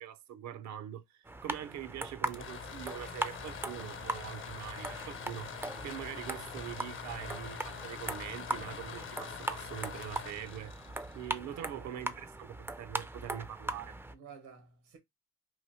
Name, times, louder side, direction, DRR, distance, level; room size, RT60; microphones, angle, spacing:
voice 1, 0.0-10.7 11.1-14.0, right 10 dB, 65° right, 0.6 m, -43 dB
sound 1, 1.2-14.1, right 2 dB, 10° right, 0.3 m, -40 dB
sound 2, 2.1-11.9, left 7 dB, 40° left, 0.5 m, -45 dB
voice 2, 11.3-12.1 14.1-15.0, right 6 dB, 85° right, 1.3 m, -53 dB
2.9 x 2.6 x 2.7 m
cardioid pair, 90°, 30 cm